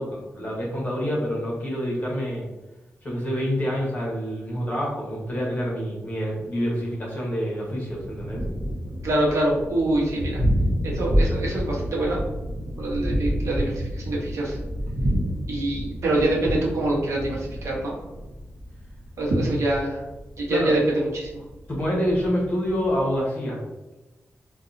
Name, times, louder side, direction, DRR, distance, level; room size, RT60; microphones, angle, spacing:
voice 1, 0.0-2.5 3.0-8.4 20.5-20.7 21.7-23.6, equal, 35° left, -4 dB, 1.0 m, -27 dB
Thunder, 7.9-23.2, equal, 40° right, 1.0 m, -29 dB
voice 2, 9.0-10.4 10.8-12.2 12.8-14.6 15.5-17.9 19.2-20.0 20.4-21.4, right 1 dB, 80° right, -3 dB, 0.8 m, -25 dB
2.8 x 2.3 x 2.5 m, 1.0 s
wide cardioid pair, 150°, 5 cm